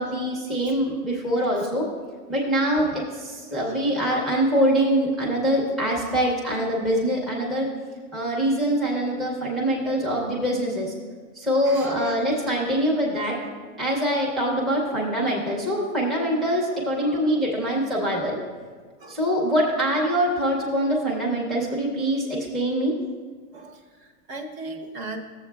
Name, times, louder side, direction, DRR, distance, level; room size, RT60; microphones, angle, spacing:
voice 1, 0.0-1.8 2.3-7.7 8.1-10.9 11.4-13.4 13.8-18.4 19.1-22.9, equal, ahead, -3 dB, 0.6 m, -24 dB
voice 2, 1.4-1.7 3.7-3.8 11.6-12.2 17.0-17.2 19.0-19.2 23.5-25.2, right 2 dB, 50° right, 3 dB, 1.0 m, -39 dB
13.5 x 7.4 x 2.2 m, 1.5 s
supercardioid pair, 160°, 42 cm